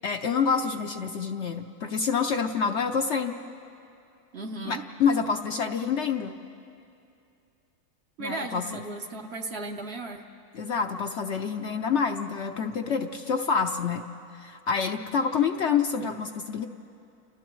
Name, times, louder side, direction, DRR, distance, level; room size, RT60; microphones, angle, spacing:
voice 1, 0.0-3.4 4.7-6.3 8.2-8.6 10.5-14.1 14.4-16.7, left 6 dB, 60° left, 5 dB, 0.8 m, -27 dB
voice 2, 4.3-4.8 8.2-10.3, right 2 dB, 50° right, 4 dB, 1.1 m, -36 dB
29.5 x 28.5 x 3.1 m, 2.6 s
omnidirectional pair, 1.6 m